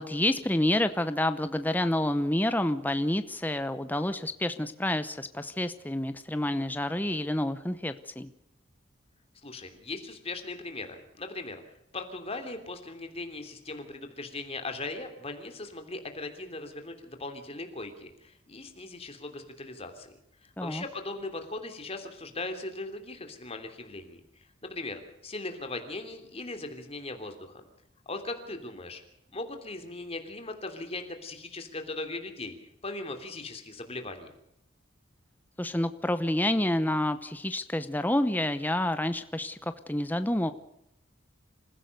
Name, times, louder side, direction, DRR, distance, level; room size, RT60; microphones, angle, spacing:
voice 1, 0.0-8.3 20.6-20.8 35.6-40.5, left 1 dB, 10° left, 10 dB, 0.8 m, -28 dB
voice 2, 9.4-11.6 11.9-24.2 24.6-27.6 28.0-29.0 29.3-32.6 32.8-34.3, left 2 dB, 30° left, 6 dB, 3.1 m, -39 dB
27.0 x 16.0 x 6.7 m, 0.80 s
head